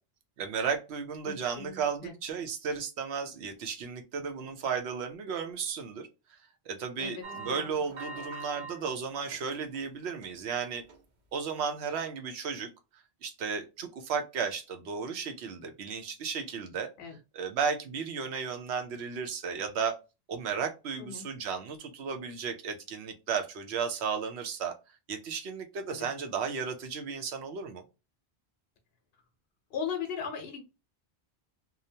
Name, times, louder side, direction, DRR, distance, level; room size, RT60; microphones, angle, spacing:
voice 1, 0.4-6.4 6.7-10.8 11.3-12.7 13.2-16.9 17.3-20.0 20.3-24.7 25.1-27.8, right 6 dB, 85° right, 0.9 m, -34 dB
voice 2, 1.2-2.1 7.0-7.8 17.0-17.2 21.0-21.3 25.9-26.1 29.7-30.6, left 7 dB, 70° left, 0.8 m, -38 dB
sound 1, 7.2-8.8 9.2-9.8 10.2-10.4 10.9-11.0, right 4 dB, 55° right, 0.7 m, -42 dB
2.8 x 2.1 x 2.6 m
omnidirectional pair, 1.1 m